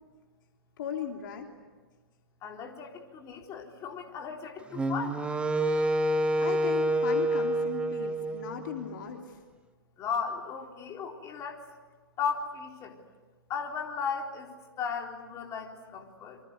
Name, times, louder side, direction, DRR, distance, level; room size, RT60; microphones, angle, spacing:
voice 1, 0.8-1.5 6.4-9.4, left 8 dB, 55° left, 2 dB, 3.3 m, -37 dB
voice 2, 2.4-5.2 10.0-11.6 12.2-13.0 13.5-14.5 14.8-16.4, left 6 dB, 25° left, 1 dB, 4.0 m, -36 dB
Wind instrument woodwind instrument, 4.7-9.0, right 1 dB, 10° right, 1.4 m, -28 dB
28.0 x 26.0 x 8.1 m, 1.3 s
hypercardioid pair, 125°, 13 cm